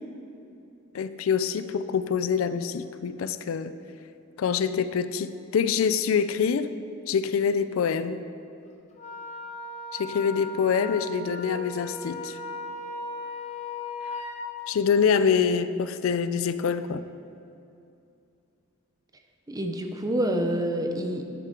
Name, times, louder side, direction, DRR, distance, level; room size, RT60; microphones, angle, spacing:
voice 1, 0.9-3.7 4.4-6.7 7.1-8.2 9.9-12.4 14.7-17.0, left 6 dB, 75° left, 12 dB, 0.4 m, -25 dB
Wind instrument woodwind instrument, 9.0-14.5, left 2 dB, 35° left, 0.8 m, -37 dB
voice 2, 19.5-21.2, right 1 dB, 20° right, 5 dB, 0.6 m, -27 dB
9.9 x 7.4 x 3.8 m, 2.6 s
head